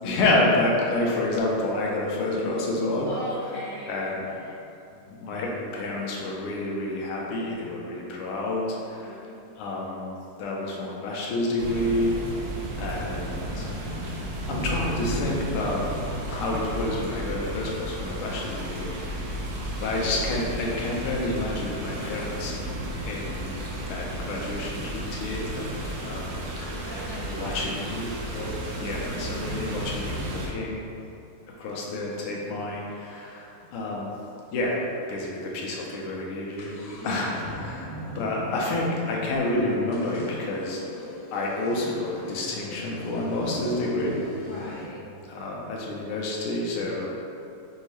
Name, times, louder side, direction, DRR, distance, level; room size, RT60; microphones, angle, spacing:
voice 1, 0.0-3.1 3.9-4.2 5.1-9.2 9.6-12.2 12.8-13.7 14.0-14.2 14.5-15.8 16.2-19.2 19.8-22.5 23.0-23.6 23.9-26.9 27.3-31.0 31.6-34.1 34.5-34.8 35.1-36.7 37.0-40.8 41.3-44.2 45.3-47.1, left 2 dB, 85° left, -3 dB, 1.6 m, -29 dB
voice 2, 3.0-4.9 8.7-9.4 12.5-13.7 26.6-27.6 29.3-30.1 37.0-37.6 44.3-45.0, left 1 dB, 10° right, -13 dB, 0.6 m, -41 dB
sound 1, 11.6-30.5, right 1 dB, 75° right, 0.8 m, -33 dB
sound 2, 25.5-25.6 26.1-28.7 29.3-29.4 29.8-29.9 30.3-34.0 34.3-34.4 34.6-34.7 35.3-35.4 35.7-44.9, left 1 dB, 70° left, 1.0 m, -41 dB
5.4 x 2.7 x 3.1 m, 2.7 s
omnidirectional pair, 2.4 m